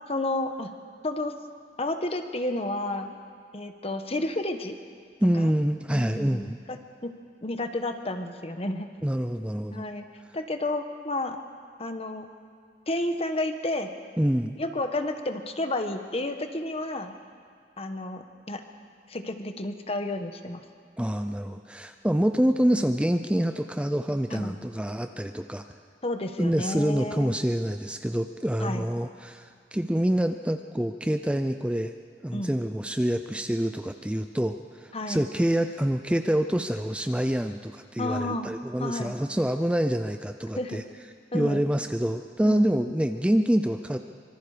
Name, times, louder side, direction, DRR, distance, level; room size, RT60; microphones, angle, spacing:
voice 1, 0.1-0.7 1.0-1.3 1.8-3.2 3.5-4.8 5.4-5.5 5.9-7.1 7.4-8.9 9.7-10.1 10.3-11.4 11.8-12.3 12.9-13.9 14.6-17.2 17.8-18.6 19.1-20.6 24.3-24.7 26.0-27.4 28.6-28.8 32.3-32.5 34.9-35.3 38.0-38.5 38.8-39.2 40.6-40.8 41.3-41.7 42.4-42.7, left 1 dB, 35° left, 7 dB, 1.3 m, -31 dB
voice 2, 5.2-6.6 9.0-9.8 14.2-14.5 21.0-25.6 26.4-31.9 32.2-40.8 41.3-44.0, equal, 5° right, 7 dB, 0.5 m, -26 dB
25.5 x 24.0 x 5.0 m, 2.2 s
head